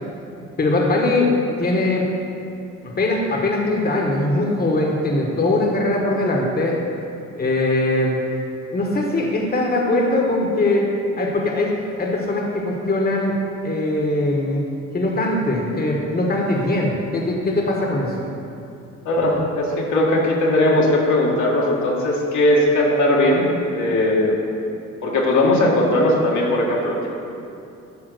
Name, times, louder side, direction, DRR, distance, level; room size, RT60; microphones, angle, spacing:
voice 1, 0.6-1.3 1.6-2.0 2.8-6.8 7.4-8.2 8.7-10.9 11.2-11.7 12.0-13.4 13.6-14.6 14.9-18.1, left 2 dB, 30° left, -1 dB, 1.3 m, -21 dB
voice 2, 19.1-23.5 23.7-24.4 25.0-27.1, left 1 dB, 75° left, -3 dB, 1.8 m, -18 dB
10.5 x 3.6 x 6.6 m, 2.7 s
cardioid pair, 90°, 30 cm